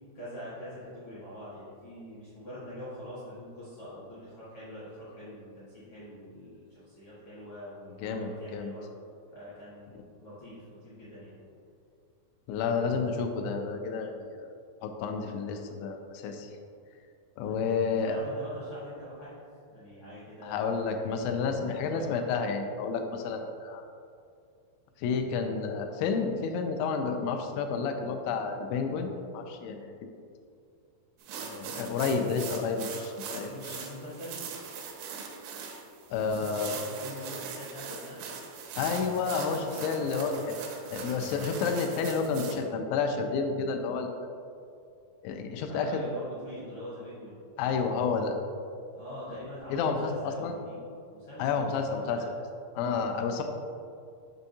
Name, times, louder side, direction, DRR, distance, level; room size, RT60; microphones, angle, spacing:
voice 1, 0.1-8.8 9.3-11.4 14.1-14.4 17.4-20.7 21.6-22.2 23.2-23.4 31.3-32.6 33.3-34.4 36.1-38.3 45.7-47.3 48.9-50.8 51.1-52.3 52.8-53.1, equal, 65° left, -11 dB, 1.4 m, -44 dB
voice 2, 8.0-8.7 12.5-14.2 14.8-16.5 17.4-18.2 20.4-23.8 25.0-29.9 31.5-33.8 36.1-36.8 38.8-40.6 40.9-44.1 45.2-46.0 47.6-48.4 49.7-50.6 51.4-52.2 52.8-53.4, left 5 dB, 85° left, 5 dB, 2.9 m, -30 dB
sound 1, 31.2-42.5, right 6 dB, 85° right, 2.8 m, -41 dB
7.1 x 5.5 x 2.7 m, 2.4 s
omnidirectional pair, 5.2 m